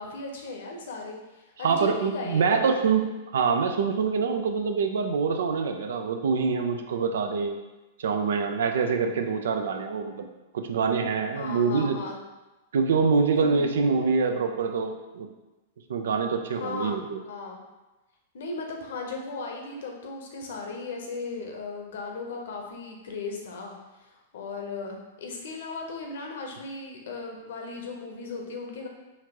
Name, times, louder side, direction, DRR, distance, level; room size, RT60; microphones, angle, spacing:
voice 1, 0.0-2.8 11.3-12.2 13.4-13.7 16.4-17.6 18.3-28.9, left 3 dB, 70° left, 1 dB, 0.7 m, -37 dB
voice 2, 1.6-7.6 8.0-10.3 10.5-12.0 12.7-15.3 15.9-17.2, right 5 dB, 75° right, 6 dB, 0.4 m, -25 dB
4.3 x 2.6 x 2.9 m, 1.1 s
hypercardioid pair, 110°, 0 cm